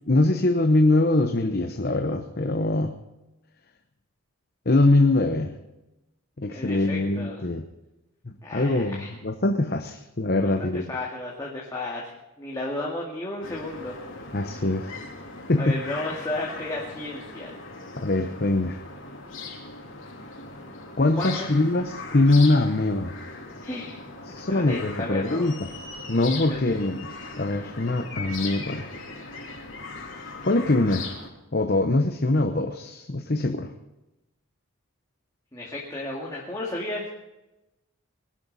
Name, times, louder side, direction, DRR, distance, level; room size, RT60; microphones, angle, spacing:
voice 1, 0.1-2.9 4.7-5.5 6.4-7.6 8.2-10.8 14.3-15.0 15.5-15.8 18.0-18.8 21.0-23.1 24.3-25.7 26.1-27.1 27.4-28.9 30.4-31.1 31.5-33.7, left 2 dB, 45° left, 5 dB, 0.9 m, -23 dB
voice 2, 6.5-7.4 8.4-9.1 10.4-14.0 14.3-14.6 15.6-17.5 21.2-21.5 23.6-24.0 24.5-25.5 26.5-26.8 35.5-37.1, left 2 dB, 15° left, -4 dB, 2.1 m, -33 dB
sound 1, 13.4-31.3, left 3 dB, 60° left, 3.4 m, -39 dB
21.5 x 12.0 x 4.2 m, 0.97 s
head